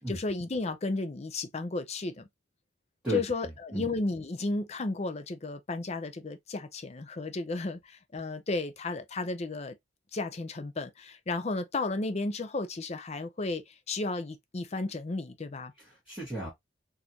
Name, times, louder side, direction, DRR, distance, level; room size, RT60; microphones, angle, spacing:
voice 1, 0.1-2.3 3.1-9.8 10.1-15.7, left 3 dB, 35° left, 0.5 m, -33 dB
voice 2, 3.0-3.8 15.8-16.5, right 2 dB, 5° right, 1.4 m, -36 dB
4.3 x 2.6 x 2.8 m
head